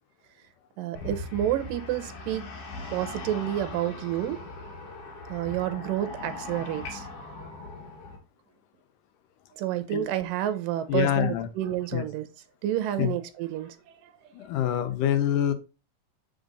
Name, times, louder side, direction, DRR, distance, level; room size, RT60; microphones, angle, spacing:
voice 1, 0.8-2.5 2.9-4.4 5.3-7.1 9.6-12.3 12.6-13.8 14.0-14.1, right 12 dB, 75° right, 2.4 m, -29 dB
sound 1, 0.9-8.2, left 2 dB, 50° left, 2.3 m, -40 dB
voice 2, 10.9-11.5 11.9-12.0 13.0-13.1 14.4-15.5, left 11 dB, 75° left, 2.2 m, -25 dB
7.8 x 5.2 x 4.0 m
omnidirectional pair, 4.1 m